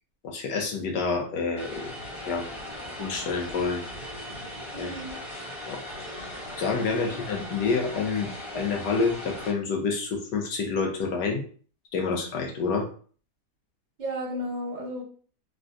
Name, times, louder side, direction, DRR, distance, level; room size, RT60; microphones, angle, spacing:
voice 1, 0.2-1.9 2.3-2.5 3.0-3.8 4.8-4.9 5.6-5.8 6.6-11.4 11.9-12.9, left 4 dB, 85° left, 1 dB, 1.4 m, -28 dB
Vehicle, 1.6-9.5, left 1 dB, 25° left, 0.7 m, -38 dB
voice 2, 4.7-5.2 7.0-7.2 14.0-15.0, equal, 40° right, -3 dB, 0.7 m, -33 dB
3.7 x 2.2 x 2.5 m, 0.42 s
omnidirectional pair, 1.8 m